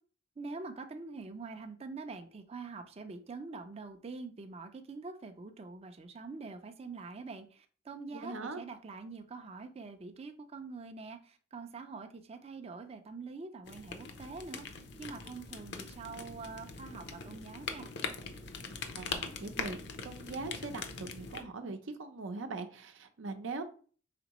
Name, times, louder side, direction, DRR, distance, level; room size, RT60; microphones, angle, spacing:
voice 1, 0.4-17.9, right 4 dB, 35° right, 6 dB, 0.4 m, -45 dB
voice 2, 8.2-8.6 19.0-19.8 20.0-23.6, right 3 dB, 90° right, 6 dB, 0.6 m, -41 dB
sound 1, 13.7-21.4, left 5 dB, 60° left, 0.6 m, -42 dB
5.0 x 3.5 x 3.0 m, 0.41 s
head